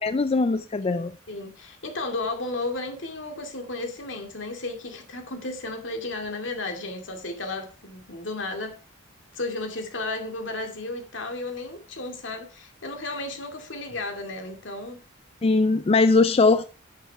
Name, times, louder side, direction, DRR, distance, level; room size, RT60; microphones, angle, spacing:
voice 1, 0.0-1.2 15.4-16.6, left 3 dB, 30° left, 0.4 m, -20 dB
voice 2, 0.8-8.8 9.3-15.0, left 2 dB, 70° left, 2.4 m, -33 dB
10.0 x 6.7 x 4.5 m
head